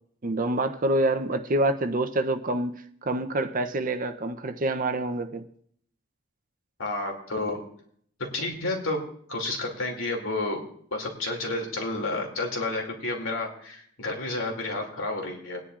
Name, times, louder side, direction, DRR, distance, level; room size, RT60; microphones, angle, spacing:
voice 1, 0.2-5.4, right 1 dB, 40° right, 0.6 m, -27 dB
voice 2, 6.8-7.6 8.2-10.7 10.9-15.6, left 2 dB, 75° left, 2.6 m, -31 dB
21.0 x 10.0 x 2.5 m
head